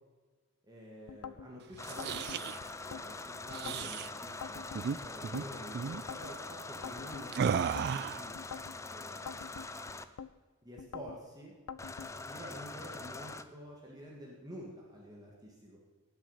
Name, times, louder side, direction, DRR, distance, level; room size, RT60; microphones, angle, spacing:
voice 1, 0.6-9.5 10.6-11.6 12.1-15.8, equal, 20° right, -2 dB, 1.7 m, -49 dB
sound 1, 1.1-1.5 2.0-3.0 3.5-3.9 4.4-5.5 5.9-6.3 6.8-7.9 8.4-8.8 9.3-10.3 10.8-11.2 11.7-12.1, left 7 dB, 90° left, 0.5 m, -45 dB
sound 2, 1.7-2.6 3.5-4.1 4.7-5.0 5.2-5.4 5.7-6.0 7.3-8.3, right 7 dB, 50° right, 0.3 m, -34 dB
sound 3, 1.8-10.0 11.8-13.4, left 3 dB, 15° left, 0.5 m, -44 dB
18.0 x 6.1 x 5.6 m, 1.4 s
head